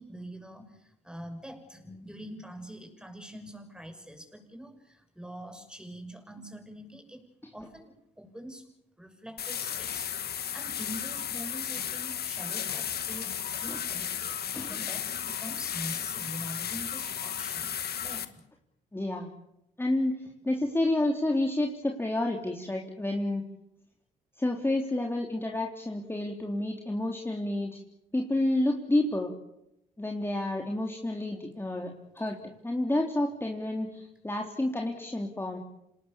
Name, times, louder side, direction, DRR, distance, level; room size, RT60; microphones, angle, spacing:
voice 1, 0.0-7.2 7.5-8.7 9.0-14.4 14.6-18.4, equal, 5° right, 6 dB, 6.7 m, -44 dB
sound 1, 9.4-18.2, left 9 dB, 60° left, 1.8 m, -34 dB
voice 2, 18.9-19.3 19.8-23.4 24.4-27.8 28.1-29.3 30.0-35.6, left 1 dB, 10° left, 1 dB, 3.4 m, -30 dB
27.0 x 19.5 x 7.2 m, 0.84 s
supercardioid pair, 65°, 18 cm